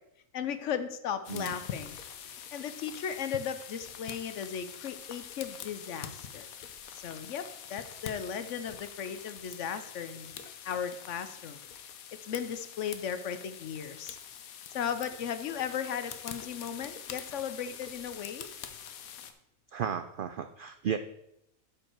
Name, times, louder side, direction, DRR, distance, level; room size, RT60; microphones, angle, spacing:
voice 1, 0.3-2.0 2.5-6.5 6.9-10.3 10.6-11.6 12.2-14.2 14.7-18.5, left 8 dB, 65° left, 11 dB, 1.0 m, -36 dB
sound 1, 1.2-19.3, left 8 dB, 85° left, 1.2 m, -45 dB
voice 2, 19.7-21.0, right 8 dB, 80° right, 10 dB, 0.4 m, -34 dB
12.0 x 4.8 x 4.5 m, 0.80 s
omnidirectional pair, 1.4 m